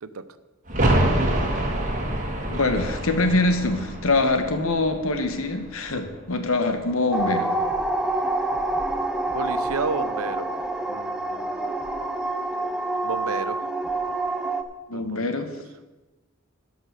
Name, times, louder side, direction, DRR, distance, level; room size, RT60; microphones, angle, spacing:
sound 1, 0.7-6.2 6.5-6.6, right 1 dB, 35° right, 1.9 m, -26 dB
voice 1, 2.4-7.5 14.9-15.5, left 2 dB, 70° left, 8 dB, 1.3 m, -24 dB
sound 2, 7.1-14.6, right 2 dB, 5° right, 0.6 m, -27 dB
voice 2, 9.3-10.5 10.9-11.7 13.0-13.7 14.9-15.5, right 4 dB, 80° right, 13 dB, 0.7 m, -32 dB
12.5 x 5.6 x 6.7 m, 1.1 s
head